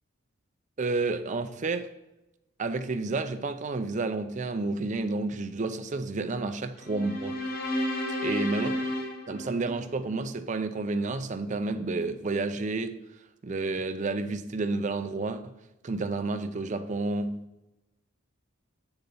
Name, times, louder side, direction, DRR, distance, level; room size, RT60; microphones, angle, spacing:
voice 1, 0.8-1.9 2.6-7.4 8.2-8.7 9.3-13.0 13.4-15.5 15.8-17.4, right 3 dB, 35° right, 0.5 m, -30 dB
sound 1, 6.8-10.2, left 1 dB, 45° left, 1.1 m, -32 dB
8.0 x 4.0 x 5.4 m
head